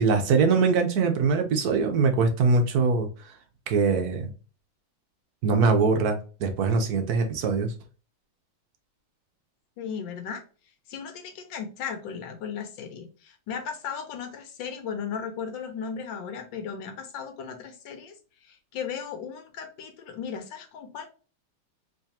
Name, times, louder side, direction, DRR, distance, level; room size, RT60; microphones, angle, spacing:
voice 1, 0.0-3.1 3.7-4.3 5.4-7.7, right 4 dB, 65° right, 5 dB, 1.0 m, -22 dB
voice 2, 9.8-10.4 10.9-18.2 18.4-21.1, left 7 dB, 70° left, 5 dB, 1.5 m, -36 dB
3.6 x 3.2 x 2.7 m, 0.37 s
omnidirectional pair, 2.3 m